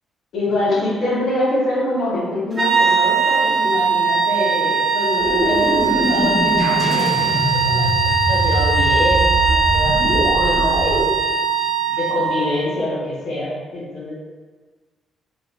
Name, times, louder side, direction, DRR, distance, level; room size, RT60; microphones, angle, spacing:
voice 1, 0.3-11.0 11.9-14.1, left 1 dB, 70° left, -7 dB, 1.4 m, -25 dB
sound 1, 2.6-12.5, right 5 dB, 35° right, 0.7 m, -19 dB
sound 2, 5.2-11.0, equal, 25° left, 0.9 m, -22 dB
3.9 x 2.6 x 2.6 m, 1.4 s
cardioid pair, 90°, 0 cm